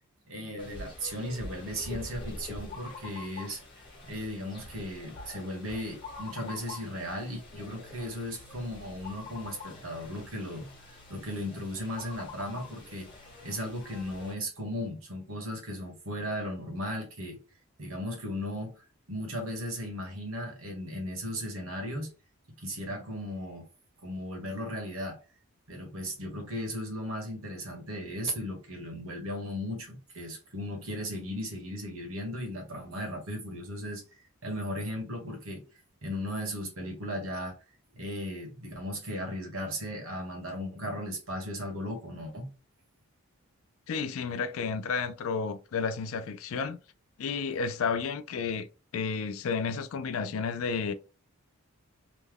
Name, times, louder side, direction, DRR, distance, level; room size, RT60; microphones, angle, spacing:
voice 1, 0.3-3.6 4.0-13.1 13.4-17.4 17.8-22.1 22.6-23.7 24.0-25.2 25.7-34.0 34.4-35.6 36.0-37.5 37.9-42.5, equal, 70° right, 1.3 m, -36 dB
sound 1, 0.6-14.3, left 2 dB, 20° left, 1.2 m, -45 dB
voice 2, 43.9-46.8 47.2-48.7 48.9-50.9, left 5 dB, 70° left, 0.4 m, -31 dB
3.2 x 2.2 x 3.4 m
head